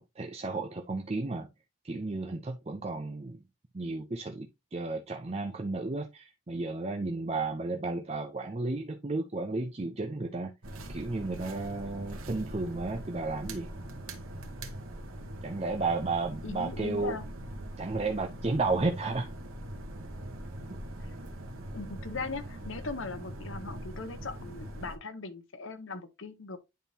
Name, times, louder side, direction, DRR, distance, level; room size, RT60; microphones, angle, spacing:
voice 1, 0.2-1.5 1.8-3.4 3.7-10.5 10.9-13.7 15.4-17.2 17.8-19.3 20.7-20.8, right 3 dB, 30° right, 0.5 m, -33 dB
sound 1, 10.6-25.0, right 1 dB, 85° right, 1.4 m, -42 dB
voice 2, 16.4-17.2 21.7-26.6, left 4 dB, 65° left, 0.9 m, -39 dB
10.5 x 3.6 x 2.8 m
head